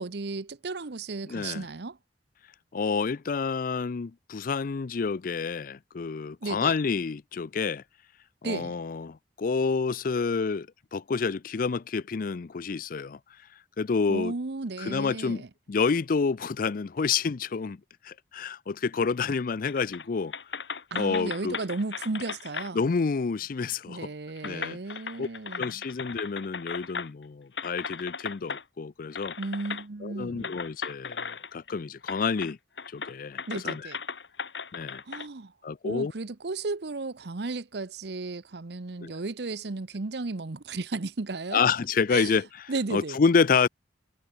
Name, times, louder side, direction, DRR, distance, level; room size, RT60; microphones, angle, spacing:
voice 1, 0.0-2.0 6.4-6.7 8.4-8.8 14.1-15.5 20.9-22.8 23.9-25.8 29.4-30.5 33.5-34.0 35.1-35.5 35.8-41.6 42.1-42.4 42.7-43.2, right 3 dB, 65° right, 0.9 m, -34 dB
voice 2, 1.3-1.6 2.7-7.8 8.4-10.7 10.9-13.2 13.8-14.3 14.8-15.4 15.7-17.8 18.0-20.3 20.9-21.6 22.7-24.1 24.4-24.8 25.2-25.3 25.6-29.4 30.0-32.6 32.9-33.9 34.7-35.0 35.6-36.1 39.0-39.1 41.5-42.5 42.9-43.7, left 5 dB, 50° left, 0.5 m, -28 dB
sound 1, 19.7-20.1 20.3-22.7 23.8-23.9 24.4-27.2 27.6-28.6 29.1-29.8 30.4-31.7 32.0-32.5 32.8-35.3, left 5 dB, 90° left, 3.0 m, -37 dB
head